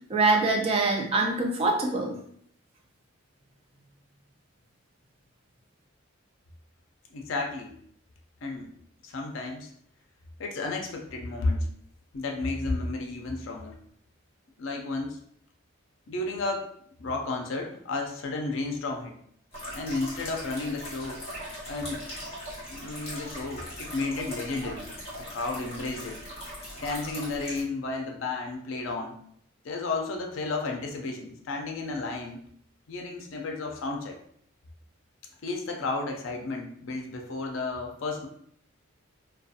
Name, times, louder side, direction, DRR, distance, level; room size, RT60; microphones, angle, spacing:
voice 1, 0.1-2.2, right 3 dB, 30° right, 1 dB, 0.3 m, -24 dB
voice 2, 7.1-7.8 8.4-8.7 9.0-9.7 10.4-11.7 12.1-13.8 14.6-15.2 16.1-16.7 17.0-19.2 19.7-21.2 21.7-22.0 22.7-24.9 25.2-26.2 26.8-29.2 29.6-32.4 32.9-34.2 35.4-38.3, left 3 dB, 65° left, 2 dB, 0.4 m, -32 dB
sound 1, 19.5-27.6, equal, 30° left, 1.1 m, -40 dB
2.4 x 2.2 x 2.6 m, 0.66 s
head